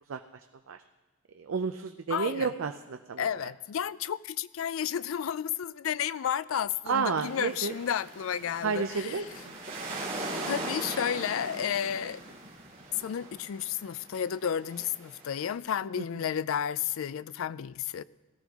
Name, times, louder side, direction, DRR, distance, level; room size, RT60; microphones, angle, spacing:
voice 1, 0.1-0.8 1.3-3.5 6.9-7.7 8.6-9.3, right 5 dB, 85° right, 7 dB, 0.5 m, -31 dB
voice 2, 2.1-2.5 3.2-9.1 10.5-12.2 12.9-18.0, left 8 dB, 90° left, 17 dB, 0.4 m, -32 dB
sound 1, 7.2-15.5, right 2 dB, 45° right, 2.9 m, -40 dB
18.0 x 13.0 x 3.6 m, 1.2 s
head